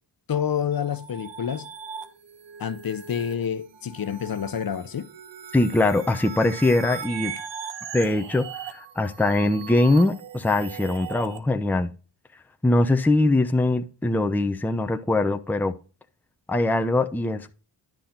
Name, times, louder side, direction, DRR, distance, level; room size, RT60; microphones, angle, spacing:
voice 1, 0.3-1.7 2.6-5.1, left 8 dB, 50° left, 1.0 m, -28 dB
sound 1, 0.7-11.4, right 8 dB, 65° right, 1.3 m, -39 dB
voice 2, 5.5-7.3 7.9-11.9 12.6-15.7 16.5-17.6, left 2 dB, 5° left, 0.7 m, -22 dB
10.5 x 5.8 x 4.0 m
cardioid pair, 65°, 46 cm